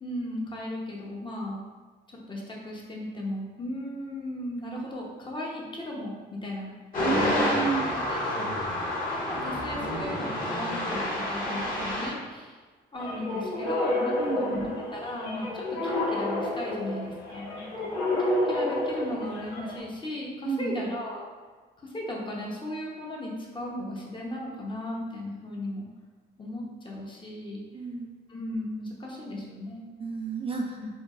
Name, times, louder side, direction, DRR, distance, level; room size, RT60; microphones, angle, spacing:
voice 1, 0.0-1.6 2.3-6.7 7.1-7.6 8.1-8.5 9.1-11.0 11.3-12.6 12.9-17.9 18.2-21.2 21.8-25.9 26.4-27.6 28.3-29.9 30.8-30.9, left 1 dB, 25° left, -3 dB, 0.8 m, -36 dB
sound 1, 6.9-12.1, left 1 dB, 45° left, 1.3 m, -29 dB
voice 2, 7.0-7.9 14.2-14.7 20.4-20.9 27.7-28.1 30.0-30.8, right 4 dB, 30° right, -1 dB, 0.4 m, -31 dB
sound 2, 12.9-19.8, left 1 dB, 90° left, 1.2 m, -30 dB
4.4 x 2.2 x 2.4 m, 1.4 s
cardioid pair, 90°, 20 cm